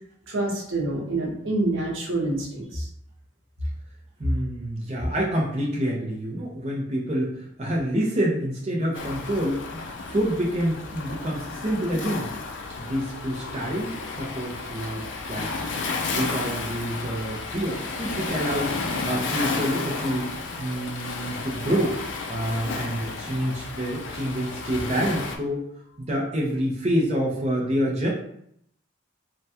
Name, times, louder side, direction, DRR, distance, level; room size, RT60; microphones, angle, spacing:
voice 1, 0.3-2.9, right 2 dB, 80° right, -2 dB, 0.8 m, -27 dB
voice 2, 4.2-9.6 10.1-12.3 12.8-13.9 14.2-15.0 15.3-15.7 16.1-18.7 19.0-20.3 20.6-21.9 22.3-25.6 26.0-28.1, equal, 35° right, -4 dB, 0.5 m, -27 dB
Waves surf, 8.9-25.4, left 4 dB, 65° left, 0.4 m, -32 dB
3.3 x 2.2 x 2.7 m, 0.71 s
head